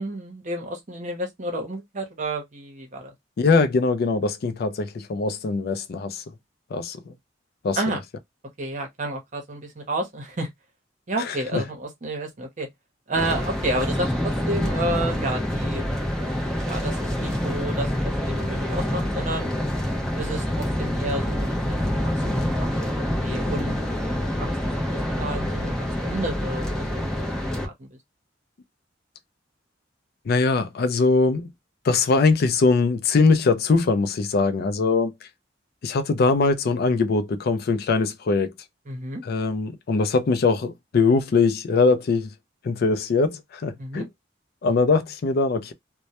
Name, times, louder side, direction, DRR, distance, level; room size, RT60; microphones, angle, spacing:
voice 1, 0.0-3.1 7.7-8.0 8.6-10.5 11.1-12.7 13.1-15.9 16.7-19.5 20.2-24.6 24.9-27.1 27.6-27.9 38.9-39.2 43.8-44.1, right 1 dB, 40° right, 0.8 m, -31 dB
voice 2, 3.4-6.2 6.7-7.1 7.6-7.8 11.2-11.6 30.3-31.5 31.8-35.1 35.8-38.5 39.2-42.3 42.6-44.0 44.6-45.7, left 4 dB, 55° left, 0.4 m, -22 dB
sound 1, 13.1-27.7, left 1 dB, 5° left, 0.6 m, -26 dB
2.1 x 2.1 x 2.8 m
head